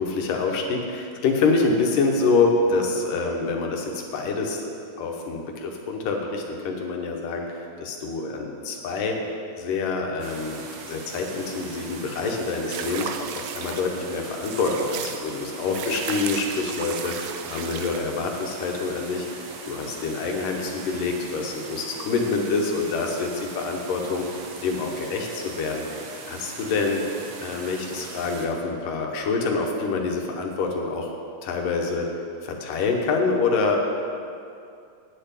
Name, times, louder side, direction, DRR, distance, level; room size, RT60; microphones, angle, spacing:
voice 1, 0.0-9.2 9.6-13.3 13.5-24.2 24.6-27.0 27.4-31.1 31.4-32.1 32.4-33.8, left 4 dB, 75° left, 1 dB, 2.8 m, -26 dB
sound 1, 10.2-28.5, right 4 dB, 65° right, 2.0 m, -40 dB
sound 2, 12.7-13.9 14.4-15.2 15.7-18.0, right 8 dB, 85° right, 1.7 m, -34 dB
9.6 x 6.8 x 9.0 m, 2.4 s
omnidirectional pair, 4.0 m